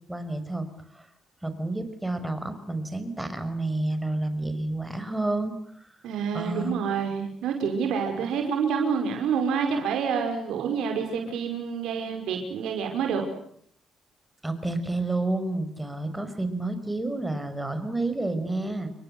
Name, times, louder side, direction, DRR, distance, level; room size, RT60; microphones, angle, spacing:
voice 1, 0.1-0.7 0.9-1.1 1.4-5.9 6.3-6.8 14.4-18.9, right 2 dB, 10° right, 9 dB, 5.7 m, -30 dB
voice 2, 6.0-13.3, right 6 dB, 85° right, 3 dB, 5.5 m, -28 dB
29.5 x 22.5 x 8.1 m, 0.65 s
cardioid pair, 90°, 0 cm